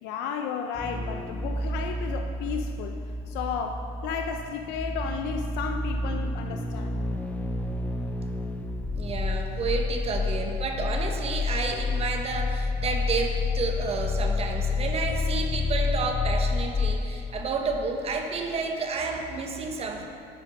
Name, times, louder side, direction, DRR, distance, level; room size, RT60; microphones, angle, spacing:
voice 1, 0.0-3.0 3.3-7.0, left 6 dB, 75° left, 5 dB, 0.5 m, -33 dB
sound 1, 0.8-18.3 18.6-18.7, left 3 dB, 10° left, 0.3 m, -30 dB
voice 2, 8.9-20.0, right 4 dB, 35° right, 3 dB, 0.9 m, -30 dB
7.5 x 5.0 x 4.9 m, 2.7 s
cardioid pair, 115°, 18 cm